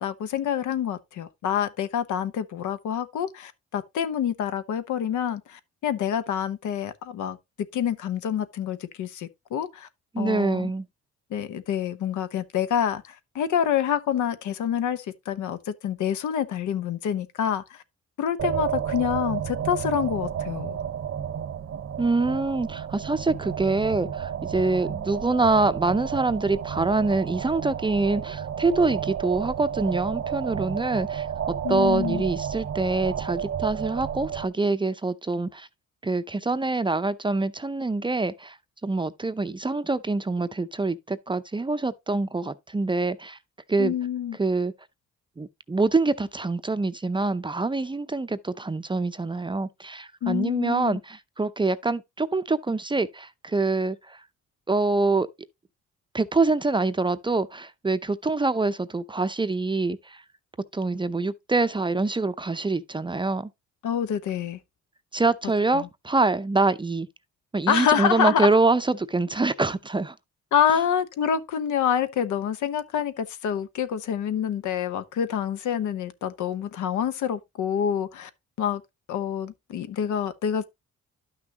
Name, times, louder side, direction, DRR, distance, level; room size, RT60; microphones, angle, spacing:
voice 1, 0.0-7.4 7.7-9.9 10.2-10.7 11.3-17.8 18.2-20.8 31.6-32.2 43.8-44.4 50.2-51.0 63.8-64.6 65.7-65.9 67.7-68.5 70.5-78.3 78.6-78.8 79.1-80.6, left 8 dB, 75° left, 1.0 m, -27 dB
voice 2, 10.1-10.9 22.0-35.7 36.0-38.6 38.8-43.4 43.7-43.9 44.4-44.7 45.4-54.2 54.7-55.3 56.1-60.2 60.7-63.5 65.1-67.1 67.5-70.1, right 3 dB, 15° right, 0.6 m, -25 dB
sound 1, 18.4-34.5, right 8 dB, 50° right, 0.8 m, -31 dB
11.5 x 6.1 x 2.8 m
cardioid pair, 90°, 30 cm